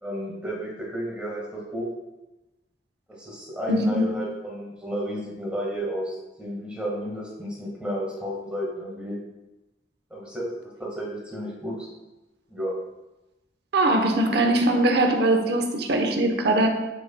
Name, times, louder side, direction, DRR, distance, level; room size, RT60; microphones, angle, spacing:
voice 1, 0.0-1.9 3.2-9.2 10.1-10.5 10.8-11.9 12.5-12.8, equal, 5° right, -4 dB, 1.7 m, -32 dB
voice 2, 3.7-4.2 13.7-16.7, right 1 dB, 65° right, 4 dB, 0.9 m, -21 dB
7.8 x 7.7 x 2.3 m, 1.0 s
head